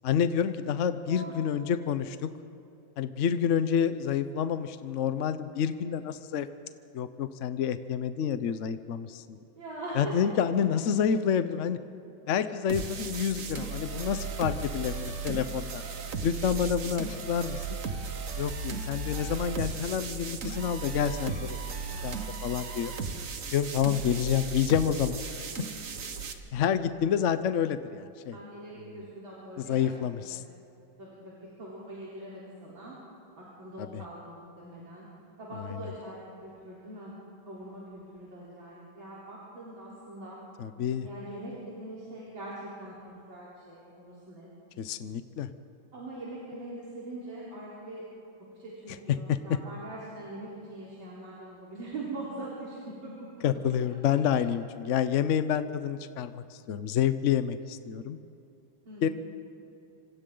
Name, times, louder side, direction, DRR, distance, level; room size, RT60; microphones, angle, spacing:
voice 1, 0.0-2.3 3.0-6.5 6.9-9.4 10.0-11.8 12.3-15.8 16.2-17.6 18.4-21.8 22.0-22.9 23.5-25.2 26.5-28.4 28.8-29.0 29.6-30.4 33.8-34.0 35.6-35.8 40.6-41.1 44.8-45.5 49.3-49.6 53.4-58.2 59.0-59.1, left 8 dB, 65° left, 11 dB, 0.7 m, -28 dB
voice 2, 1.1-1.4 9.6-10.1 21.8-22.3 28.3-29.9 30.3-30.4 31.0-33.0 33.4-35.1 35.4-37.1 37.4-40.4 41.0-43.0 43.3-44.5 45.9-48.0 48.5-53.1 58.8-59.1, right 2 dB, 90° right, -8 dB, 4.7 m, -42 dB
sound 1, 12.7-26.3, right 5 dB, 45° right, 1.5 m, -36 dB
27.0 x 26.0 x 3.9 m, 2.8 s
omnidirectional pair, 2.1 m